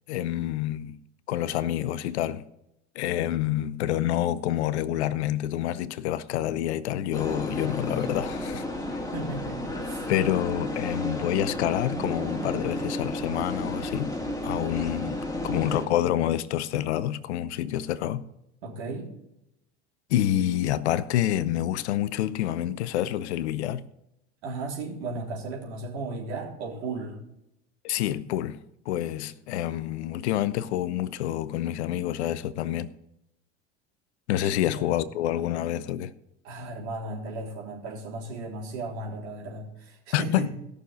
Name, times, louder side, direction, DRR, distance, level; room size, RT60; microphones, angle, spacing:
voice 1, 0.1-1.0 1.3-2.4 3.0-8.6 10.1-14.2 14.4-15.2 15.4-18.2 20.1-23.8 27.8-28.6 28.9-32.9 34.3-36.1 40.1-40.5, left 12 dB, 75° left, 0.8 m, -27 dB
sound 1, 7.1-15.9, left 1 dB, 10° left, 2.3 m, -32 dB
voice 2, 9.1-10.1 18.6-19.1 24.4-27.2 34.3-34.9 36.4-40.6, right 2 dB, 75° right, 3.9 m, -35 dB
16.0 x 6.7 x 5.2 m
hypercardioid pair, 75°, 34 cm